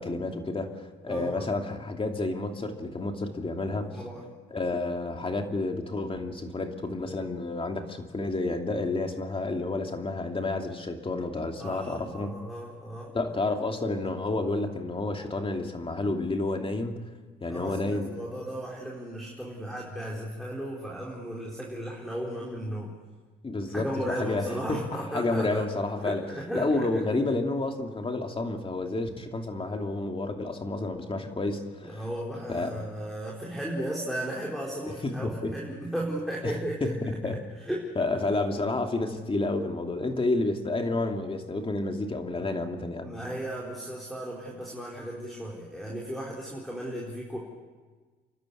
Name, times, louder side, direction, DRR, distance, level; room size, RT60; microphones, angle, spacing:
voice 1, 0.0-3.9 4.5-12.3 13.1-17.1 17.4-18.1 23.4-26.2 26.5-32.0 32.5-32.7 34.9-35.5 36.4-37.4 38.0-43.1, left 2 dB, 25° left, 4 dB, 2.7 m, -30 dB
voice 2, 1.1-1.5 3.9-4.2 11.6-13.1 17.5-22.9 23.7-25.7 26.0-26.8 31.8-36.9 37.6-37.9 42.4-42.5 43.0-47.4, right 1 dB, ahead, -3 dB, 4.4 m, -35 dB
29.0 x 12.0 x 9.9 m, 1.4 s
cardioid pair, 90°, 20 cm